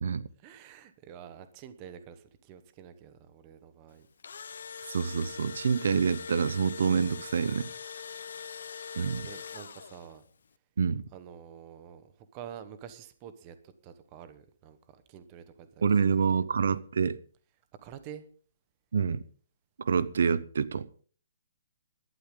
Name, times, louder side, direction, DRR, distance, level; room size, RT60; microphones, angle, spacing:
voice 1, 0.4-4.1 9.2-10.2 11.1-16.4 17.8-18.3, right 9 dB, 20° right, 1.1 m, -48 dB
Engine / Drill, 4.0-10.2, left 6 dB, 65° left, 0.9 m, -42 dB
voice 2, 4.9-7.7 9.0-9.3 10.8-11.0 15.8-17.2 18.9-19.2 19.8-20.9, right 6 dB, 65° right, 0.8 m, -27 dB
17.5 x 12.0 x 3.8 m
hypercardioid pair, 180°, 0 cm